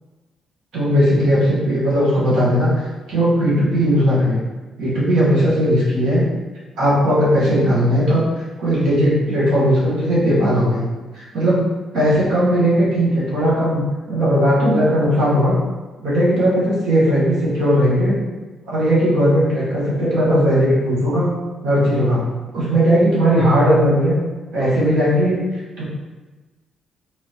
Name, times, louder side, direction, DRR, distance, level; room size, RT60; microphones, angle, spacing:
voice 1, 0.7-2.7 3.1-4.4 4.8-6.2 6.8-8.2 8.6-10.8 11.1-11.6 11.9-13.8 14.1-15.6 16.0-18.2 18.7-21.3 21.6-22.2 22.5-24.2 24.5-25.4 25.8-25.9, equal, 80° right, -8 dB, 1.4 m, -17 dB
3.7 x 3.1 x 2.9 m, 1.2 s
cardioid pair, 90°, 0 cm